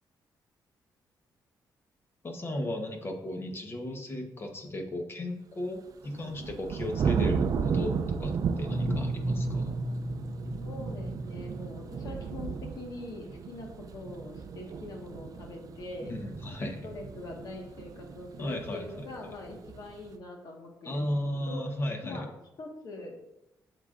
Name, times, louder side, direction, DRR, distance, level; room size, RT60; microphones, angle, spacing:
voice 1, 2.2-9.8 16.1-16.9 18.4-18.8 20.8-22.3, left 1 dB, 30° left, 4 dB, 1.0 m, -35 dB
sound 1, 5.9-20.1, right 6 dB, 55° right, 0.4 m, -34 dB
sound 2, 8.5-12.2, equal, 15° right, 1.9 m, -34 dB
voice 2, 10.6-16.1 16.8-21.6 22.0-22.3 22.6-23.1, left 2 dB, 60° left, 1 dB, 1.5 m, -43 dB
8.1 x 6.6 x 2.5 m, 0.88 s
cardioid pair, 130°, 7 cm